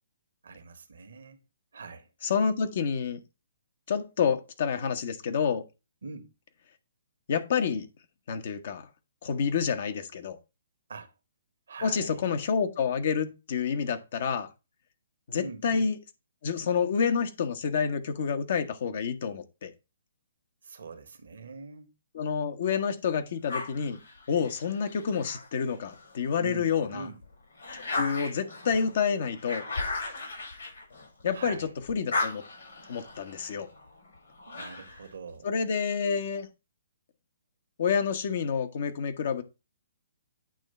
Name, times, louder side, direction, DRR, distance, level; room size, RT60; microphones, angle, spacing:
voice 1, 0.4-1.4 1.7-2.1 6.0-6.3 10.9-11.1 11.7-12.2 15.4-15.9 20.6-21.9 26.4-27.2 31.3-31.7 34.5-35.5, right 4 dB, 70° right, 1.3 m, -43 dB
voice 2, 2.2-3.2 3.9-5.6 7.3-7.9 8.3-8.9 9.2-10.4 11.8-14.5 15.3-16.0 16.4-19.7 22.1-24.0 24.3-27.0 27.7-29.6 31.2-32.4 32.9-33.7 35.4-36.5 37.8-39.4, left 6 dB, 55° left, 1.1 m, -28 dB
sound 1, 23.5-26.2 26.7-31.5 31.8-35.1, left 3 dB, 70° left, 4.7 m, -37 dB
8.9 x 3.1 x 5.5 m
figure-of-eight pair, 130°, 0 cm